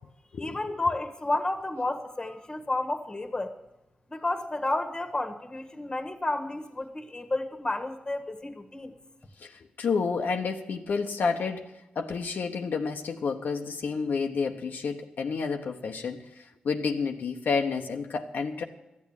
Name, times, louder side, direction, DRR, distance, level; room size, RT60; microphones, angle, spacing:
voice 1, 0.4-3.5 4.1-8.9, left 2 dB, 25° left, 1.5 m, -31 dB
voice 2, 9.4-18.6, left 5 dB, 80° left, 1.0 m, -30 dB
13.5 x 8.5 x 8.9 m
cardioid pair, 85°, 3 cm